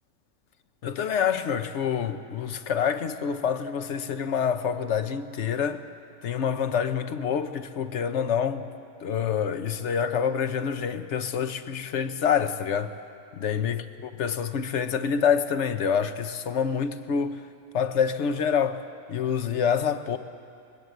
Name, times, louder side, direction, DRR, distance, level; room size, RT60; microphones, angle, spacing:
voice 1, 0.8-5.9 6.2-8.7 9.0-13.0 13.4-17.4 17.7-20.2, left 7 dB, 55° left, 1.0 m, -27 dB
21.0 x 20.0 x 7.9 m
omnidirectional pair, 1.6 m